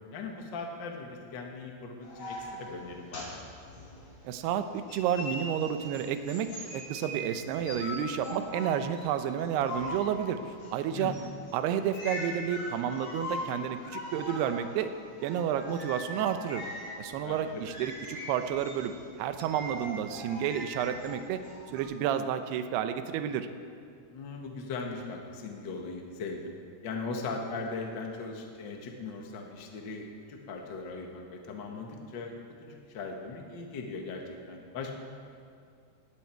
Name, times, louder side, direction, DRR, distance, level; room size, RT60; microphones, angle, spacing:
voice 1, 0.1-3.4 10.9-11.2 17.2-17.4 24.1-26.5 26.8-32.3 32.6-34.9, left 4 dB, 65° left, 1 dB, 1.1 m, -39 dB
sound 1, 2.0-4.5 4.9-21.8, left 1 dB, 35° left, 5.9 m, -41 dB
voice 2, 4.2-11.1 11.5-14.9 15.2-16.6 17.0-21.4 21.7-23.5, right 9 dB, 80° right, 9 dB, 2.8 m, -31 dB
19.5 x 16.0 x 4.6 m, 2.2 s
omnidirectional pair, 4.7 m